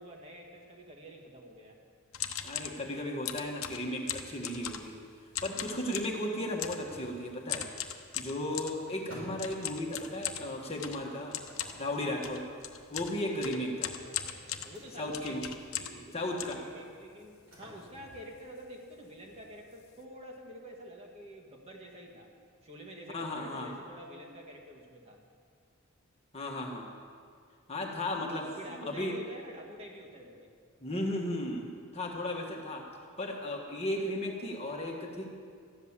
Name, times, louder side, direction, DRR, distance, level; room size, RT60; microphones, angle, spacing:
voice 1, 0.0-1.8 14.0-22.3 22.6-25.2 28.5-30.5, equal, 30° right, 0 dB, 1.7 m, -48 dB
sound 1, 2.1-2.8 3.3-5.0 5.3-6.2 6.6-6.9 7.5-8.8 9.4-16.1 16.4-17.2 17.7-17.8 18.0-18.3 18.5-18.7 19.3-19.4 19.7-20.0, left 10 dB, 75° left, 0.9 m, -39 dB
voice 2, 2.4-5.0 5.4-7.7 8.1-11.4 11.8-12.4 12.9-13.9 15.0-15.5 16.1-16.6 23.1-23.7 26.3-26.9 27.7-29.1 30.8-32.9 33.2-35.3, left 1 dB, 30° left, 0 dB, 1.5 m, -35 dB
sound 2, 6.9-19.5, equal, 80° right, 5.0 m, -55 dB
14.0 x 10.5 x 7.3 m, 2.2 s
head